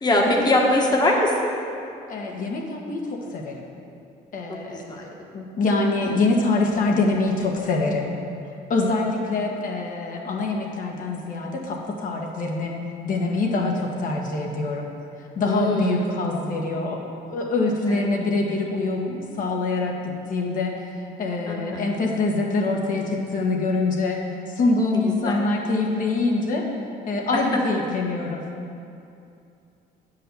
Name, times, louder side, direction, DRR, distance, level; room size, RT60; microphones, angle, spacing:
voice 1, 0.0-1.3 4.7-5.0 8.8-8.9 15.4-16.2 17.9-18.0 21.5-21.8 24.9-25.4 27.3-27.4, left 1 dB, 25° left, -1 dB, 1.5 m, -22 dB
voice 2, 2.1-3.6 4.3-8.1 8.7-12.7 13.0-14.9 15.3-24.2 24.5-26.6 27.0-28.4, left 3 dB, 55° left, 0 dB, 1.6 m, -25 dB
9.1 x 5.6 x 6.9 m, 2.6 s
cardioid pair, 110°, 17 cm